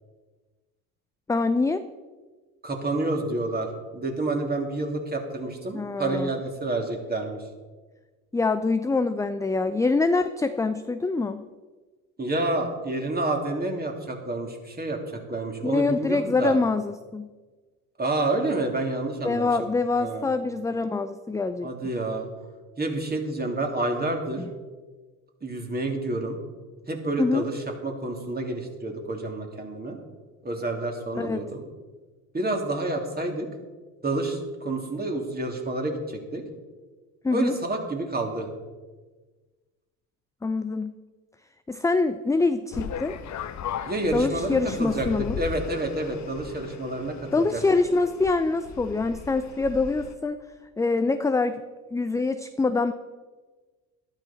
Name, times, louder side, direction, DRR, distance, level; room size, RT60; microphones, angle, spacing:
voice 1, 1.3-1.8 5.7-6.3 8.3-11.4 15.6-17.3 19.2-21.7 24.4-24.5 27.2-27.5 31.2-31.4 37.2-37.6 40.4-40.9 41.7-43.2 44.1-45.4 47.3-50.4 50.8-51.6 51.9-52.9, left 3 dB, 10° left, 10 dB, 0.5 m, -25 dB
voice 2, 2.6-7.4 12.2-16.6 18.0-19.7 20.0-20.3 21.6-22.3 22.8-24.4 25.4-26.4 26.9-30.0 30.4-31.6 32.3-33.5 34.0-36.4 37.3-38.5 43.9-47.6, right 2 dB, 20° right, 2 dB, 3.1 m, -29 dB
sound 1, 42.7-50.1, left 8 dB, 40° left, 1.1 m, -37 dB
12.5 x 12.5 x 4.4 m, 1.3 s
hypercardioid pair, 65°, 43 cm